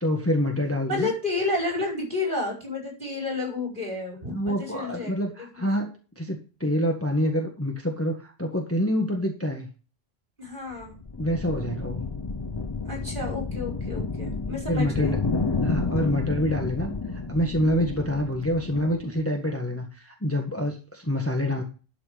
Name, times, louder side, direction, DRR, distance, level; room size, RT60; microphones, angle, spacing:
voice 1, 0.0-1.1 4.3-5.9 6.2-9.7 11.2-12.1 14.7-15.2 15.6-16.9 17.3-21.6, equal, 10° left, 2 dB, 1.5 m, -26 dB
voice 2, 0.9-5.1 5.5-5.7 10.4-11.0 12.9-15.2, left 3 dB, 45° right, -1 dB, 5.6 m, -30 dB
sound 1, 10.7-19.2, left 3 dB, 30° left, 0.5 m, -30 dB
12.0 x 6.1 x 5.0 m, 0.35 s
omnidirectional pair, 1.2 m